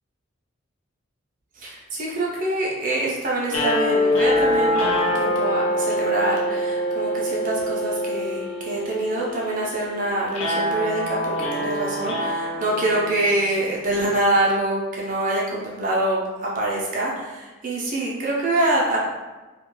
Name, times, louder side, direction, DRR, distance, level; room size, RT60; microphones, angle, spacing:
voice 1, 1.6-19.0, right 1 dB, 40° right, -4 dB, 0.4 m, -25 dB
sound 1, 3.5-13.7, equal, 80° left, 0.6 m, -25 dB
2.2 x 2.1 x 3.0 m, 1.2 s
head